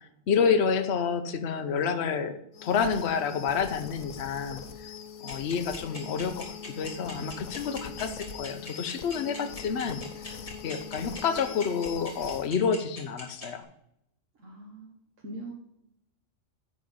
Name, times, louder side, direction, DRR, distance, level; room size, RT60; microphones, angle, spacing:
voice 1, 0.0-4.9 5.2-10.4 10.6-13.7, left 6 dB, 60° left, 8 dB, 1.0 m, -29 dB
sound 1, 2.5-12.5, left 7 dB, 85° left, 1.1 m, -42 dB
sound 2, 5.3-13.5, left 2 dB, 30° left, 2.4 m, -41 dB
voice 2, 14.3-15.0 15.2-15.5, right 1 dB, 85° right, -2 dB, 1.8 m, -41 dB
10.0 x 3.9 x 7.1 m, 0.80 s
omnidirectional pair, 1.3 m